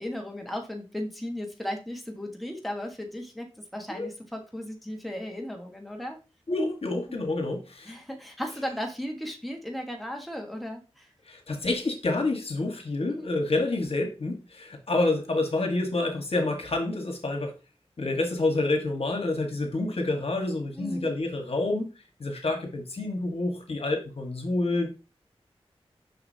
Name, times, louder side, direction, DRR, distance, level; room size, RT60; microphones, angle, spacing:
voice 1, 0.0-6.2 7.1-7.2 7.8-11.1 13.1-13.3 20.7-21.1, equal, ahead, 2 dB, 1.4 m, -36 dB
voice 2, 6.5-7.9 11.3-17.5 18.0-21.9 22.2-24.9, left 2 dB, 70° left, 3 dB, 1.5 m, -28 dB
6.7 x 5.9 x 2.8 m, 0.30 s
wide cardioid pair, 55°, 10 cm